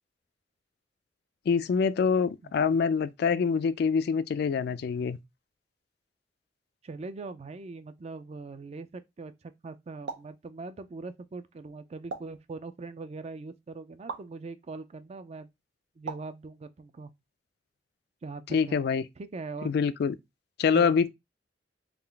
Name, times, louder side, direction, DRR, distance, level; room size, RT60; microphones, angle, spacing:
voice 1, 1.5-5.2 18.5-19.0 19.6-20.1 20.6-21.1, left 6 dB, 60° left, 0.3 m, -25 dB
voice 2, 6.8-15.5 16.0-17.1 18.2-18.8 19.2-19.7 20.7-20.9, right 3 dB, 35° right, 0.4 m, -41 dB
sound 1, 10.1-10.4 12.1-12.4 14.1-14.3 16.1-16.4, right 4 dB, 90° right, 0.6 m, -38 dB
3.7 x 2.4 x 3.3 m
head